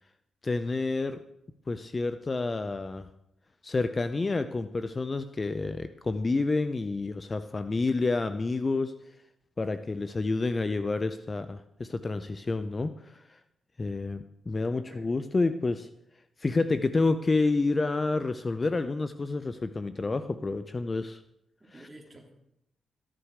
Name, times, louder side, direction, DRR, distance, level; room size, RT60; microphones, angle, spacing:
voice 1, 0.4-1.2 1.7-3.1 3.6-8.9 9.6-13.2 13.8-15.9 16.4-21.2 21.7-21.9, left 3 dB, 30° left, 11 dB, 0.6 m, -29 dB
voice 2, 14.6-15.1 21.6-22.3, right 1 dB, 20° right, 0 dB, 3.3 m, -51 dB
14.5 x 11.0 x 4.9 m, 0.81 s
cardioid pair, 100°, 0 cm